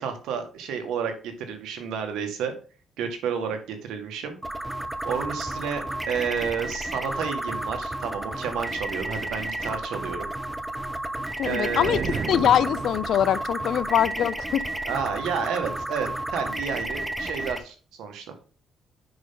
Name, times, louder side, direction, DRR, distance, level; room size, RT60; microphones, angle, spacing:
voice 1, 0.0-2.5 3.0-4.4 5.0-10.3 11.4-12.2 14.8-18.4, right 7 dB, 85° right, 1.7 m, -31 dB
sound 1, 4.4-17.6, right 1 dB, 10° right, 0.9 m, -32 dB
voice 2, 11.4-12.0 12.3-14.6, left 10 dB, 70° left, 0.5 m, -23 dB
sound 2, 11.7-13.4, right 6 dB, 50° right, 0.6 m, -33 dB
7.8 x 5.5 x 3.7 m
cardioid pair, 90°, 0 cm